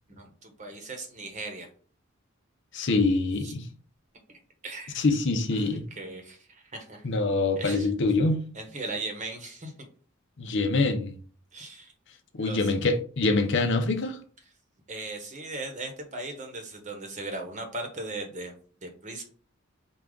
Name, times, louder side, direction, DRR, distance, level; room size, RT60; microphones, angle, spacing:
voice 1, 0.1-1.7 3.4-3.6 4.3-5.0 5.5-7.1 7.6-7.9 8.5-9.9 11.5-11.9 12.4-12.7 14.9-18.5 18.8-19.2, right 2 dB, 35° right, 1.0 m, -38 dB
voice 2, 2.7-3.6 5.0-5.8 7.0-8.4 10.4-11.2 12.3-14.2, left 3 dB, 60° left, 0.6 m, -25 dB
4.8 x 2.3 x 3.7 m
head